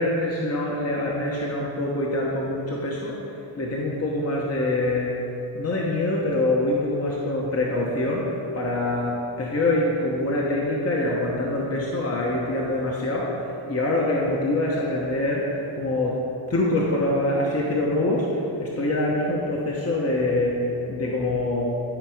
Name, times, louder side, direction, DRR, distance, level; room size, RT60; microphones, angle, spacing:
voice 1, 0.0-5.2 5.5-16.2 16.5-21.6, left 1 dB, 35° left, -3 dB, 1.2 m, -25 dB
12.5 x 4.8 x 5.0 m, 3.0 s
cardioid pair, 85°, 45 cm